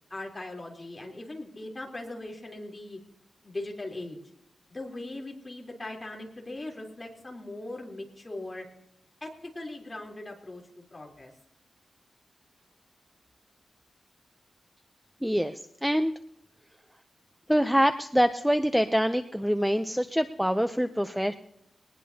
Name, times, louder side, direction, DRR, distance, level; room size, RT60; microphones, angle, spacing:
voice 1, 0.1-3.0 3.4-4.2 4.7-8.6 9.2-11.3, left 2 dB, 25° left, 0 dB, 3.6 m, -40 dB
voice 2, 15.2-16.1 17.5-21.3, equal, ahead, 8 dB, 0.6 m, -25 dB
21.5 x 19.5 x 2.8 m, 0.73 s
wide cardioid pair, 130°, 0 cm